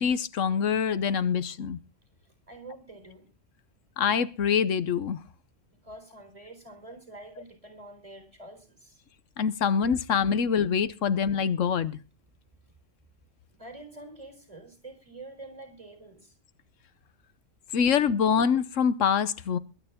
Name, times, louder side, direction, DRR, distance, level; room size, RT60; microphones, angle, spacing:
voice 1, 0.0-1.8 4.0-5.2 9.4-12.0 17.7-19.6, left 7 dB, 85° left, 1.3 m, -25 dB
voice 2, 2.2-3.3 5.7-9.0 13.5-16.4, right 2 dB, 25° right, 4.4 m, -47 dB
22.5 x 9.4 x 3.6 m
omnidirectional pair, 1.3 m